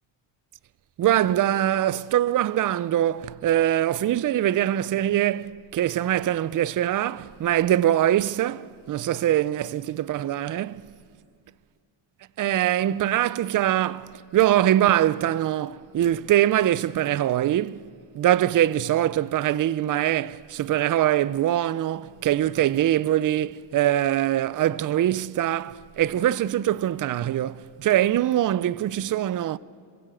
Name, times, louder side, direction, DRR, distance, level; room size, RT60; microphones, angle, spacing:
voice 1, 1.0-10.9 12.4-17.8 18.1-29.6, right 12 dB, 40° right, 0.5 m, -23 dB
26.5 x 16.0 x 7.9 m
cardioid pair, 95°, 49 cm